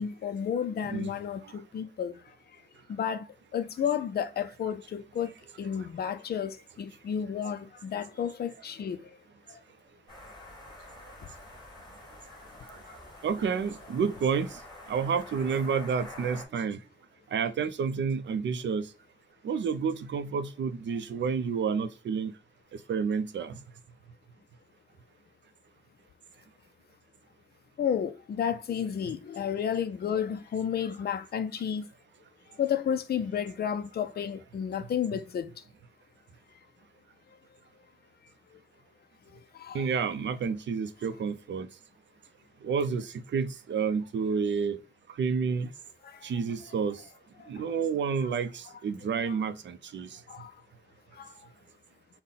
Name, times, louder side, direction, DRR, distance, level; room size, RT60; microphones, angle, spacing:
voice 1, 0.0-2.1 2.9-3.3 3.5-5.3 5.6-9.0 27.8-31.8 32.6-35.5 39.6-40.0 49.2-49.4 50.3-50.5 51.2-51.3, left 8 dB, 60° left, 0.4 m, -31 dB
sound 1, 10.1-16.5, left 1 dB, 25° left, 2.3 m, -47 dB
voice 2, 13.2-14.6 14.9-16.8 17.3-18.9 19.4-22.3 22.9-23.6 39.7-41.7 42.6-44.8 45.2-45.7 46.2-47.0 47.5-50.1, right 6 dB, 85° right, 0.5 m, -29 dB
5.6 x 2.1 x 3.9 m
wide cardioid pair, 120°, 18 cm